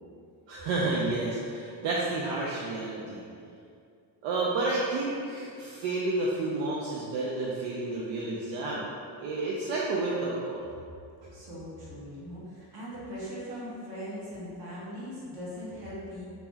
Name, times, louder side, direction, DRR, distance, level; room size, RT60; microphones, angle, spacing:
voice 1, 0.5-3.2 4.2-8.9 9.2-10.7, right 2 dB, 75° right, -5 dB, 0.5 m, -30 dB
voice 2, 11.3-16.3, equal, 50° right, -7 dB, 1.1 m, -40 dB
2.9 x 2.0 x 3.4 m, 2.4 s
cardioid pair, 95°, 46 cm